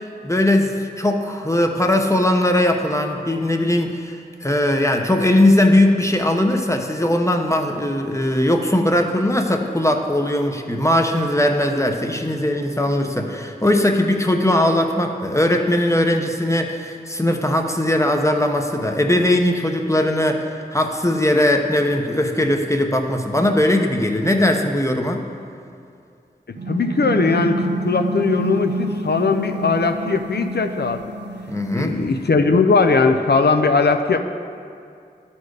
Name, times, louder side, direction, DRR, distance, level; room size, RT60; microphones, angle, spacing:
voice 1, 0.2-25.2 31.5-32.0, left 1 dB, 15° left, 3 dB, 0.8 m, -19 dB
sound 1, 26.6-32.2, right 2 dB, 85° right, 0.6 m, -28 dB
voice 2, 26.7-31.0 31.8-34.2, left 4 dB, 70° left, 6 dB, 0.5 m, -19 dB
12.5 x 4.4 x 4.8 m, 2.4 s
wide cardioid pair, 45°, 18 cm